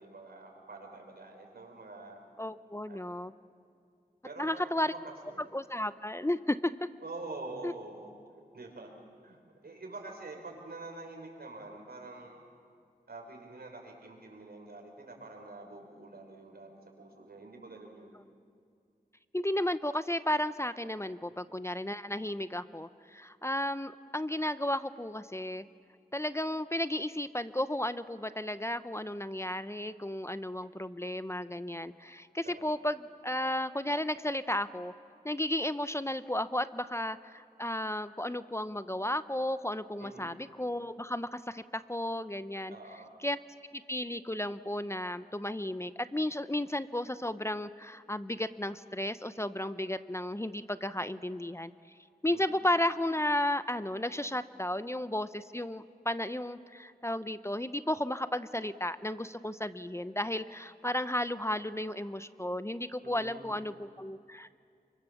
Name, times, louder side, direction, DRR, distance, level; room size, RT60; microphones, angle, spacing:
voice 1, 0.0-2.3 2.9-3.2 4.2-5.5 7.0-8.2 8.5-8.9 9.2-12.4 13.1-18.1 32.4-32.8 40.0-40.4 42.7-43.1 52.3-52.7 63.0-63.6, right 2 dB, 80° right, 1 dB, 5.1 m, -46 dB
voice 2, 2.4-3.3 4.4-4.9 5.5-6.9 7.6-7.7 19.3-25.6 26.1-34.9 35.2-42.7 43.2-43.4 43.7-51.7 52.2-64.5, left 1 dB, 15° left, 13 dB, 0.7 m, -33 dB
27.0 x 24.5 x 7.1 m, 2.3 s
cardioid pair, 45°, 16 cm